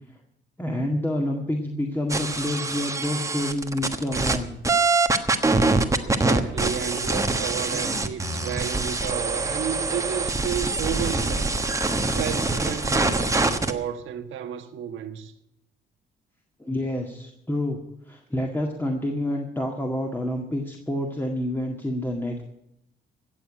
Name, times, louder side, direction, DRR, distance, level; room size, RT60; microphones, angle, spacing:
voice 1, 0.6-4.5 16.6-17.8 18.1-22.4, left 1 dB, 10° left, 1.9 m, -28 dB
sound 1, 2.1-4.4 4.6-13.7, right 3 dB, 15° right, 1.3 m, -24 dB
voice 2, 6.0-11.6 12.1-15.3, right 9 dB, 75° right, 1.5 m, -32 dB
16.5 x 7.1 x 9.0 m
cardioid pair, 90°, 20 cm